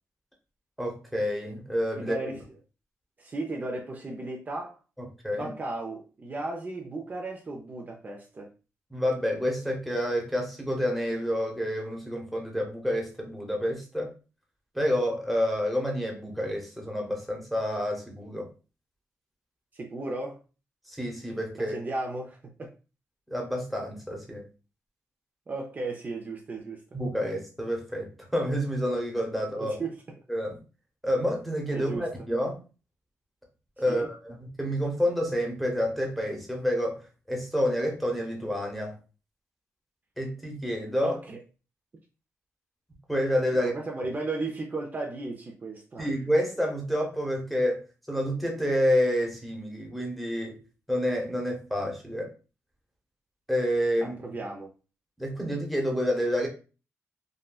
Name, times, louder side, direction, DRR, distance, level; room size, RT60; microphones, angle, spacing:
voice 1, 0.8-2.2 5.0-5.5 8.9-14.1 14.7-18.5 20.9-21.8 23.3-24.4 26.9-29.7 30.3-30.6 31.0-32.6 33.8-39.0 40.2-41.2 43.1-43.7 46.0-47.8 48.1-50.6 50.9-52.3 53.5-54.2 55.2-56.5, equal, ahead, 0 dB, 0.9 m, -28 dB
voice 2, 2.0-2.4 3.2-4.8 5.4-8.5 19.7-20.4 21.6-22.7 25.5-26.8 29.6-30.0 31.7-32.1 33.9-34.1 41.0-41.4 43.6-46.1 54.0-54.7, right 2 dB, 35° right, 1 dB, 0.5 m, -35 dB
3.6 x 2.2 x 2.3 m, 0.34 s
cardioid pair, 95°, 5 cm